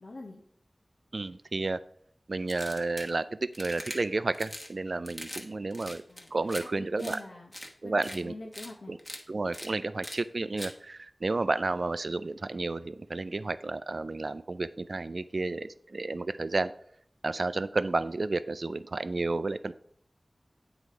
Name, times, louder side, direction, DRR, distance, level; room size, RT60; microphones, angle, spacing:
voice 1, 0.0-0.4 6.1-7.5 7.8-9.0, left 2 dB, 80° left, -1 dB, 0.9 m, -45 dB
voice 2, 1.1-1.8 2.3-6.0 6.3-7.2 7.8-8.3 8.9-9.0 9.3-16.7 17.2-19.7, right 3 dB, 65° right, 14 dB, 0.3 m, -31 dB
sound 1, 2.5-3.1 3.5-4.0 4.3-4.7 5.1-5.4 5.7-6.6 7.0-7.2 7.5-7.7 8.0-8.2 8.5-8.7 9.0-9.2 9.5-9.7 10.0-10.2 10.6-10.7, equal, 10° left, 1.1 m, -41 dB
8.2 x 3.9 x 4.7 m, 0.65 s
wide cardioid pair, 55°, 0 cm